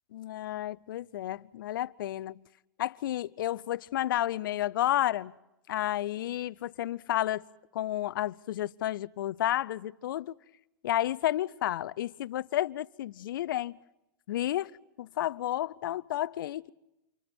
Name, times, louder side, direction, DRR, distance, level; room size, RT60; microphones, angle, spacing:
voice 1, 0.1-2.4 2.8-5.4 5.7-7.5 7.7-10.3 10.8-13.8 14.3-14.7 15.0-16.7, left 13 dB, 80° left, 0.7 m, -31 dB
30.0 x 29.0 x 4.5 m
hypercardioid pair, 125°, 11 cm